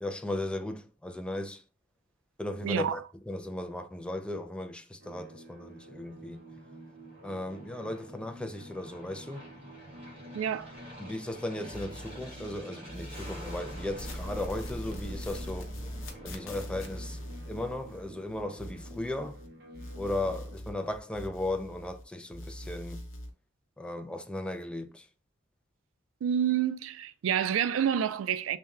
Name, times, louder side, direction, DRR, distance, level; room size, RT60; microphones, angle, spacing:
voice 1, 0.0-1.6 2.4-6.4 7.2-9.5 11.0-15.7 16.2-17.2 17.5-19.4 19.9-23.0 23.8-25.1, left 1 dB, 5° left, 0.3 m, -36 dB
voice 2, 2.6-3.0 10.3-10.7 26.2-28.6, right 9 dB, 80° right, 0.3 m, -28 dB
sound 1, 5.0-20.6, right 1 dB, 55° right, 0.7 m, -51 dB
Aircraft, 5.3-18.1, equal, 30° right, 1.5 m, -48 dB
sound 2, 11.7-12.6 12.9-19.5 19.7-22.0 22.3-23.3, equal, 80° left, 0.7 m, -42 dB
3.5 x 2.2 x 4.2 m
head